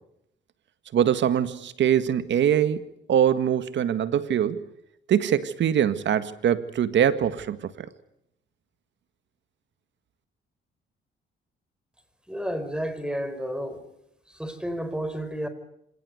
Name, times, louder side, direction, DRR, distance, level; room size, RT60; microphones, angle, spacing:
voice 1, 0.9-2.8 3.1-4.6 5.1-7.9, right 9 dB, 65° right, 13 dB, 1.8 m, -23 dB
voice 2, 12.3-13.8 14.3-15.5, equal, 5° right, 11 dB, 4.6 m, -31 dB
26.5 x 18.5 x 9.5 m, 0.78 s
cardioid pair, 90°, 20 cm